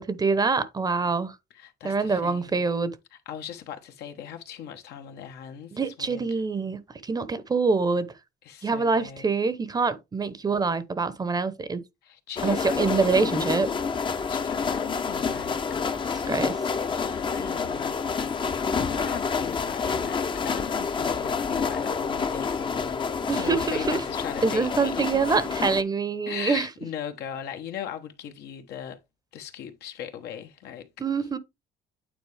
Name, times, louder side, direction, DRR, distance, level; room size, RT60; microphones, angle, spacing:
voice 1, 0.0-1.4 1.8-3.0 5.7-8.1 8.6-11.8 12.4-13.7 16.3-16.6 23.3-24.0 24.4-26.7 31.0-31.4, right 4 dB, 25° right, 0.8 m, -25 dB
voice 2, 1.5-2.7 3.1-6.4 8.4-9.3 12.0-13.5 14.3-16.3 16.9-18.0 18.5-25.2 26.3-29.0 29.3-30.9, left 9 dB, 75° left, 1.2 m, -39 dB
sound 1, 12.4-25.8, left 5 dB, 30° left, 0.7 m, -28 dB
9.1 x 4.2 x 3.3 m
cardioid pair, 110°, 17 cm